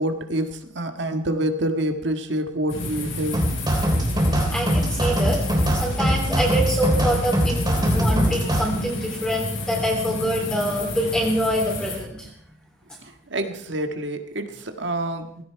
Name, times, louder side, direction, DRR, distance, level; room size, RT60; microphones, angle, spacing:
voice 1, 0.0-3.4 7.7-8.1 13.3-15.4, right 1 dB, 65° right, 6 dB, 1.6 m, -27 dB
sound 1, 2.7-12.0, left 2 dB, 75° left, 7.3 m, -31 dB
sound 2, 3.3-8.7, equal, 20° right, 3.6 m, -22 dB
voice 2, 4.5-5.4 5.7-12.3, equal, 5° left, -2 dB, 3.2 m, -25 dB
17.0 x 16.5 x 4.7 m, 0.72 s
head